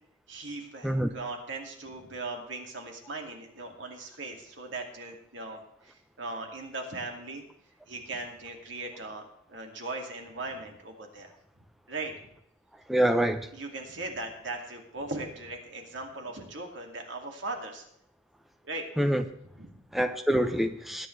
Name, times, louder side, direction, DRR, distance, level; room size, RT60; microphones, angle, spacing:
voice 1, 0.3-7.4 7.9-11.3 11.9-12.1 13.5-17.8 18.6-18.8 19.5-19.8, right 2 dB, 70° right, 2 dB, 2.4 m, -39 dB
voice 2, 12.9-13.5 19.0-19.2 19.9-21.1, right 1 dB, ahead, 7 dB, 0.7 m, -25 dB
21.0 x 9.1 x 3.3 m, 0.76 s
head